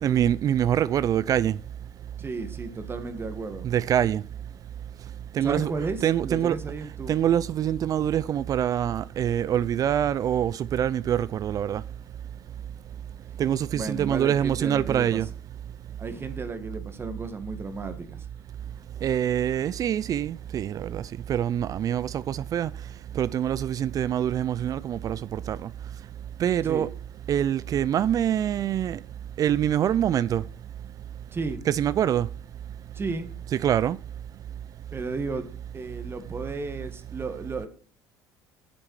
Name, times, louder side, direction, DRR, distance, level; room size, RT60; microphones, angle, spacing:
voice 1, 0.0-1.6 3.6-4.2 5.3-5.7 6.0-6.6 7.1-11.8 13.4-15.3 19.0-21.0 21.3-22.7 23.2-25.7 26.4-26.9 27.3-29.0 29.4-30.4 31.7-32.3 33.5-34.0, right 10 dB, 45° right, 0.4 m, -25 dB
voice 2, 2.2-3.7 5.4-7.1 13.7-15.2 16.0-18.2 26.6-26.9 31.3-31.6 32.9-33.3 34.9-35.5 35.7-37.7, right 4 dB, 30° right, 1.6 m, -33 dB
8.3 x 7.6 x 4.8 m
supercardioid pair, 80°, 8 cm